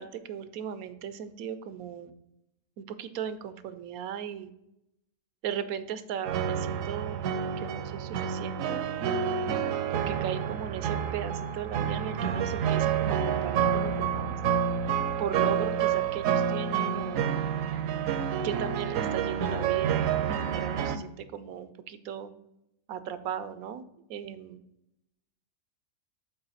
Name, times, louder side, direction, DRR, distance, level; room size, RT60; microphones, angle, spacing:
voice 1, 0.0-2.1 2.8-4.5 5.4-7.2 7.6-8.8 9.9-14.4 15.2-17.3 18.4-22.3 22.9-24.6, right 9 dB, 90° right, 13 dB, 1.1 m, -37 dB
sound 1, 6.3-21.0, right 8 dB, 75° right, 0.9 m, -28 dB
7.2 x 3.1 x 5.5 m, 0.84 s
omnidirectional pair, 1.5 m